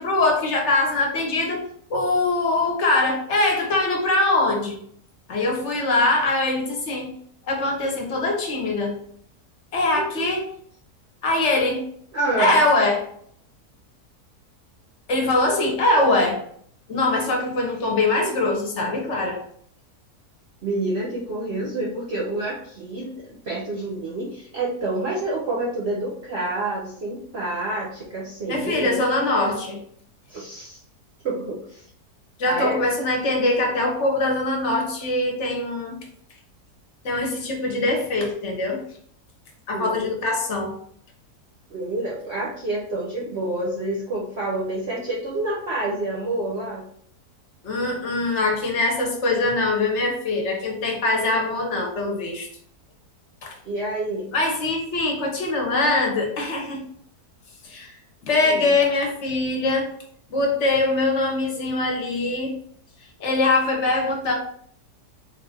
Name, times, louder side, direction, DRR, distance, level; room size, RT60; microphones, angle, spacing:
voice 1, 0.0-1.6 1.9-4.8 5.3-7.1 7.5-9.0 9.7-10.4 11.2-11.8 12.4-13.0 15.1-16.4 16.9-19.4 28.5-29.8 32.4-36.0 37.0-38.8 39.7-40.7 47.6-52.5 53.4-53.5 54.3-56.8 57.6-57.9 58.2-59.9 60.3-62.5 63.2-64.3, left 2 dB, 55° left, 1 dB, 1.1 m, -22 dB
voice 2, 12.1-12.6 20.6-29.0 30.3-30.8 31.2-31.8 32.5-32.8 39.7-40.1 41.7-46.9 53.6-54.3 58.4-58.7, right 2 dB, 55° right, -3 dB, 0.7 m, -28 dB
3.8 x 2.5 x 3.5 m, 0.63 s
omnidirectional pair, 1.7 m